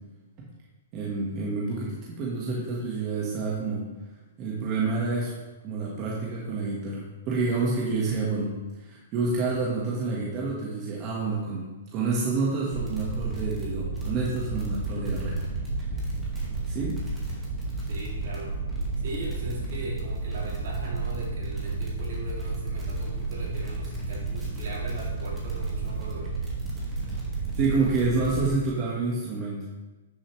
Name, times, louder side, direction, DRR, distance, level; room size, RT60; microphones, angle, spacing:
voice 1, 0.9-3.9 4.4-5.3 5.6-8.5 8.8-15.3 16.7-17.0 27.5-29.6, right 3 dB, 30° right, -4 dB, 1.5 m, -28 dB
sound 1, 12.7-28.5, right 3 dB, 10° right, 1.9 m, -31 dB
voice 2, 17.9-18.6 19.0-26.3, right 1 dB, 60° right, -3 dB, 2.9 m, -38 dB
9.5 x 6.8 x 3.2 m, 1.1 s
hypercardioid pair, 150°, 0 cm